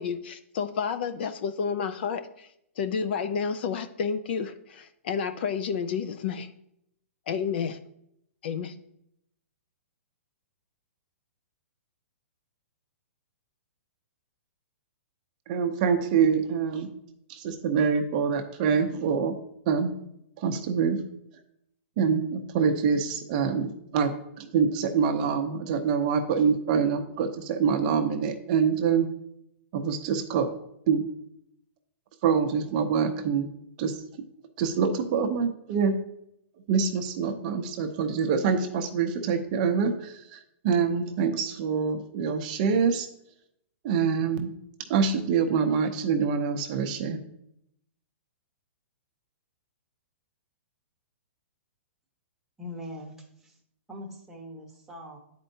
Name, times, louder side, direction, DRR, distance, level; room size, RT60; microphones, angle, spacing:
voice 1, 0.0-2.5 2.8-6.5 7.3-7.8 8.4-8.7, left 6 dB, 50° left, 11 dB, 0.4 m, -30 dB
voice 2, 15.5-16.9 17.3-19.4 19.7-19.9 20.4-21.0 22.0-29.1 29.7-30.5 30.9-31.1 32.2-33.5 33.8-34.0 34.6-36.0 36.7-43.1 43.8-44.5 44.9-47.2, right 6 dB, 35° right, 6 dB, 0.6 m, -25 dB
voice 3, 52.6-53.2 53.4-53.5 53.9-55.2, left 1 dB, 5° right, -1 dB, 0.9 m, -41 dB
10.5 x 4.4 x 2.7 m, 0.77 s
hypercardioid pair, 160°, 7 cm